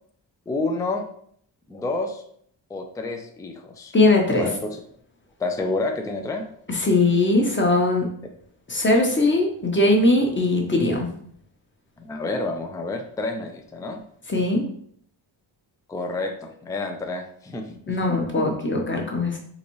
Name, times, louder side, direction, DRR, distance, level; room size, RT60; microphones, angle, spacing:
voice 1, 0.5-1.0 1.7-2.2 2.7-3.9 4.4-4.8 5.4-6.4 12.0-14.0 15.9-17.8 18.1-18.4, left 2 dB, 10° left, 4 dB, 0.4 m, -29 dB
voice 2, 3.9-4.5 6.7-8.0 8.7-11.1 14.3-14.6 17.9-19.4, left 2 dB, 25° left, 0 dB, 0.9 m, -20 dB
3.9 x 2.6 x 3.0 m, 0.63 s
cardioid pair, 80°, 47 cm